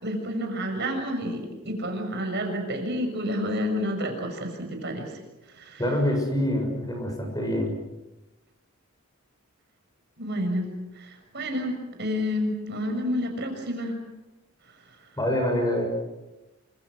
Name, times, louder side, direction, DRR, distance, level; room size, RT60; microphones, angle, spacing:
voice 1, 0.0-5.1 5.5-5.8 10.2-10.7 10.9-14.0, equal, 50° right, 4 dB, 6.6 m, -29 dB
voice 2, 5.8-7.7 15.2-15.9, left 1 dB, 15° left, 3 dB, 6.8 m, -25 dB
27.5 x 27.0 x 6.3 m, 1.0 s
head